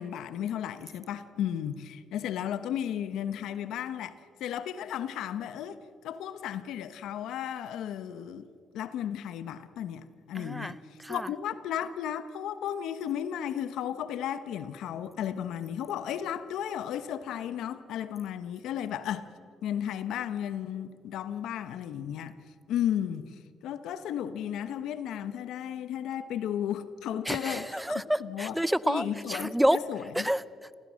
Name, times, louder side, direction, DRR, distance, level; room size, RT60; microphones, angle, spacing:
voice 1, 0.0-8.5 8.7-10.8 11.1-19.3 19.6-22.4 22.7-23.3 23.6-28.5 28.8-30.3, left 10 dB, 85° left, 1.0 m, -34 dB
voice 2, 10.3-11.3 27.3-29.8 30.1-30.7, right 1 dB, 5° right, 0.5 m, -29 dB
29.0 x 15.0 x 6.4 m
cardioid pair, 90°, 0 cm